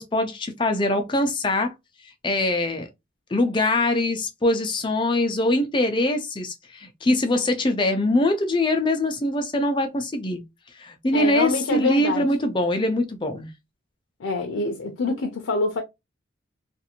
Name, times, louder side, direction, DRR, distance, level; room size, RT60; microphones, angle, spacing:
voice 1, 0.0-1.7 2.2-2.9 3.3-10.4 10.8-13.5, left 1 dB, 25° left, 0.4 m, -23 dB
voice 2, 11.1-12.3 14.2-15.8, left 3 dB, 85° left, 0.5 m, -25 dB
2.6 x 2.5 x 2.7 m
head